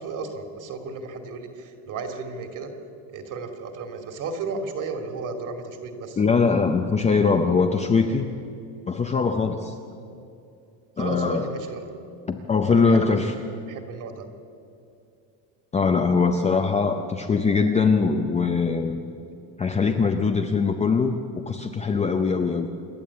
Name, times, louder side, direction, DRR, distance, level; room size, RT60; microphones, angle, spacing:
voice 1, 0.0-2.7 3.1-6.2 11.0-11.9 12.7-13.4 13.7-14.2, right 4 dB, 40° right, 5 dB, 2.5 m, -34 dB
voice 2, 6.2-8.3 8.9-9.8 11.0-11.5 12.3-13.3 15.7-19.0 19.6-22.7, left 4 dB, 15° left, 4 dB, 0.6 m, -22 dB
27.5 x 11.0 x 8.5 m, 2.6 s
cardioid pair, 155°, 49 cm